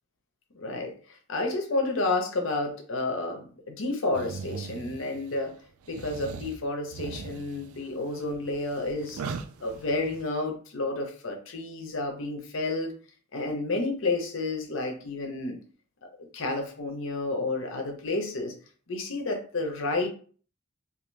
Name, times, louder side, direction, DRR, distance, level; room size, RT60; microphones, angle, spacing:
voice 1, 0.5-0.9 1.3-5.6 5.9-9.2 9.6-12.9 13.3-15.6 16.2-18.5 18.9-20.1, left 2 dB, 65° left, 4 dB, 0.7 m, -30 dB
sound 1, 4.1-5.4 5.8-10.2, right 5 dB, 85° right, 0.3 m, -40 dB
2.6 x 2.5 x 3.1 m, 0.41 s
head